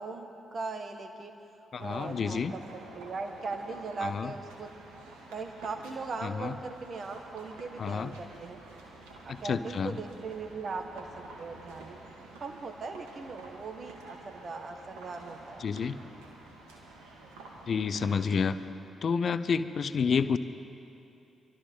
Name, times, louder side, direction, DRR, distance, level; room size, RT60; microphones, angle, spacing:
voice 1, 0.0-1.3 1.8-2.6 2.9-4.7 5.3-8.6 9.2-11.1 11.4-12.0 12.4-15.7, right 4 dB, 50° right, 6 dB, 1.4 m, -39 dB
voice 2, 1.7-2.5 4.0-4.3 6.2-6.5 7.8-8.1 9.3-9.9 15.6-16.0 17.7-18.6 19.0-20.4, left 6 dB, 55° left, 13 dB, 0.5 m, -29 dB
sound 1, 1.7-18.7, right 2 dB, 85° right, 1.8 m, -49 dB
25.0 x 13.0 x 3.8 m, 2.7 s
hypercardioid pair, 45°, 0 cm